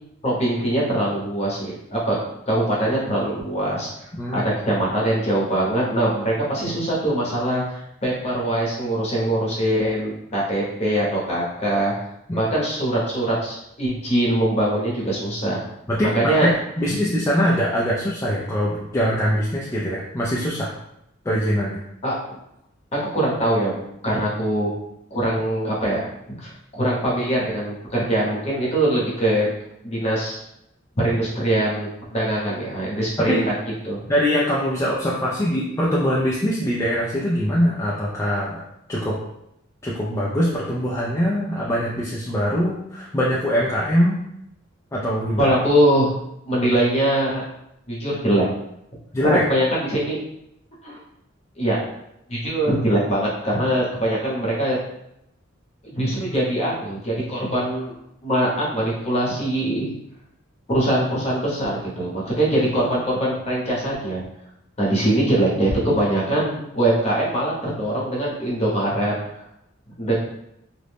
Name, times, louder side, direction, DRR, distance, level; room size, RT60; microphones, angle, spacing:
voice 1, 0.2-2.2 2.5-3.9 4.3-11.9 12.3-15.6 16.0-16.5 16.9-17.0 22.0-22.2 22.9-24.7 25.1-26.0 26.4-29.5 29.8-30.4 30.9-33.4 33.8-34.0 45.4-46.1 46.5-47.4 47.9-48.4 49.2-50.2 50.8-50.9 51.6-51.8 52.3-54.8 55.8-57.9 58.2-59.9 60.7-64.2 64.8-69.1 70.0-70.1, right 1 dB, 30° left, -5 dB, 0.9 m, -22 dB
voice 2, 4.2-4.5 12.3-12.4 15.9-20.7 21.3-21.8 33.2-33.4 34.1-38.6 38.9-39.2 39.8-44.2 44.9-45.5 49.1-49.4, equal, 15° left, -6 dB, 0.3 m, -22 dB
2.5 x 2.0 x 3.3 m, 0.80 s
head